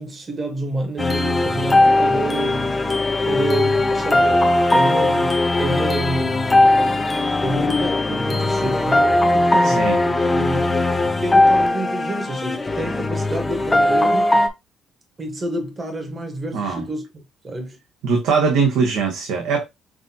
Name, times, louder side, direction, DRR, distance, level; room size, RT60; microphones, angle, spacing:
voice 1, 0.0-2.8 3.2-6.5 7.4-14.3 15.2-17.8, right 2 dB, 20° right, 1.0 m, -29 dB
sound 1, 1.0-14.5, left 2 dB, 10° left, 0.4 m, -19 dB
voice 2, 9.6-10.0 16.5-16.8 18.0-19.6, right 5 dB, 90° right, 1.0 m, -21 dB
5.9 x 2.6 x 2.7 m
cardioid pair, 180°, 0 cm